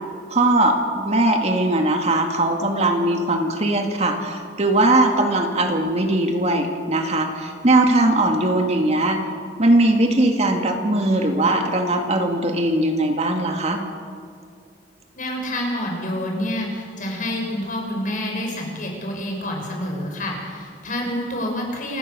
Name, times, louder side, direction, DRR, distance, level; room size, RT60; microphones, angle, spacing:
voice 1, 0.3-9.2 9.6-13.8, right 1 dB, 40° right, 4 dB, 2.1 m, -20 dB
voice 2, 15.2-22.0, left 1 dB, 50° left, 1 dB, 5.9 m, -28 dB
28.0 x 17.0 x 6.8 m, 2.2 s
head